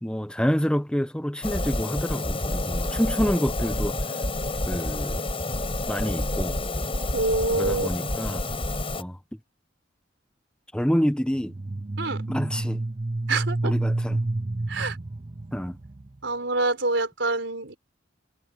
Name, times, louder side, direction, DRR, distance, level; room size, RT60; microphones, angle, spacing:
voice 1, 0.0-4.0 4.7-5.2 5.9-6.6 7.6-8.4 9.0-9.2 10.7-11.5 12.3-12.8 13.6-14.2 15.5-15.8, equal, 5° left, 1.1 m, -27 dB
sound 1, 1.4-9.0, left 2 dB, 30° left, 4.7 m, -29 dB
voice 2, 7.1-7.9 12.0-12.2 13.3-13.7 14.7-15.0 16.2-17.8, right 2 dB, 75° right, 4.8 m, -26 dB
sound 2, 11.3-16.2, right 2 dB, 30° right, 0.6 m, -29 dB
head